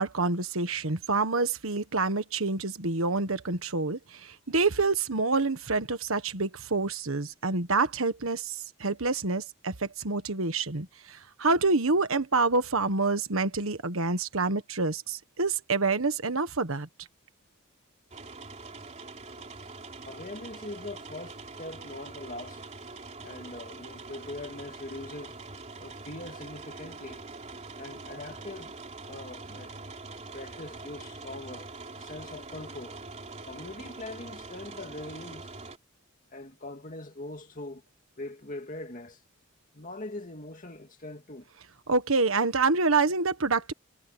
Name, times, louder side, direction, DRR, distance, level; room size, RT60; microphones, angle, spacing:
voice 1, 0.0-16.9 41.9-43.7, right 3 dB, 80° right, 1.5 m, -27 dB
sound 1, 18.1-35.8, right 3 dB, 35° right, 3.4 m, -44 dB
voice 2, 19.4-19.7 20.1-22.7 23.2-25.4 25.8-27.3 27.8-28.7 29.1-29.8 30.3-31.7 31.9-33.0 33.4-35.5 36.3-37.8 38.2-39.2 39.7-41.5, left 2 dB, 40° left, 2.3 m, -42 dB
head